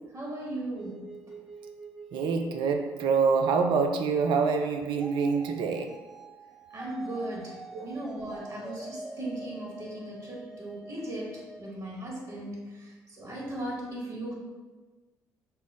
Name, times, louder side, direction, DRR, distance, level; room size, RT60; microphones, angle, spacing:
voice 1, 0.1-1.1 6.7-14.3, right 1 dB, 40° right, -4 dB, 1.4 m, -37 dB
sound 1, 0.8-11.7, right 2 dB, 5° right, 0.6 m, -45 dB
voice 2, 2.1-6.0 7.7-7.9, right 5 dB, 60° right, 5 dB, 0.4 m, -26 dB
5.4 x 2.0 x 3.4 m, 1.3 s
figure-of-eight pair, 45°, 9 cm